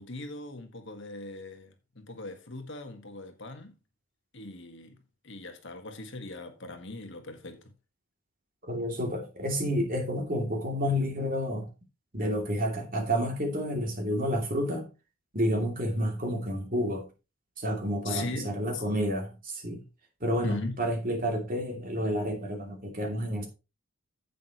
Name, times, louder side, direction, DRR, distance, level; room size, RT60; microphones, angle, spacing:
voice 1, 0.0-3.7 4.3-5.0 5.2-7.6 18.0-18.8 20.4-20.7, left 2 dB, 55° left, 1.6 m, -39 dB
voice 2, 8.7-11.7 12.1-14.9 15.3-17.1 17.6-19.8 20.2-23.5, equal, 40° right, 2.7 m, -30 dB
10.5 x 8.2 x 3.0 m
head